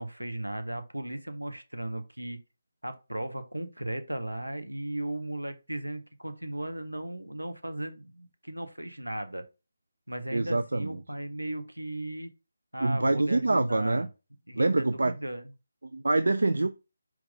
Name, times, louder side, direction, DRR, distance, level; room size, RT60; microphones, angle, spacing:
voice 1, 0.0-2.4 2.8-9.4 10.1-12.3 12.7-14.1 14.5-15.5, right 1 dB, 85° right, 0.8 m, -36 dB
voice 2, 10.3-11.0 12.8-14.1 14.6-15.1 15.9-16.7, right 2 dB, 65° right, 0.3 m, -25 dB
4.6 x 2.4 x 3.7 m
figure-of-eight pair, 150°, 0 cm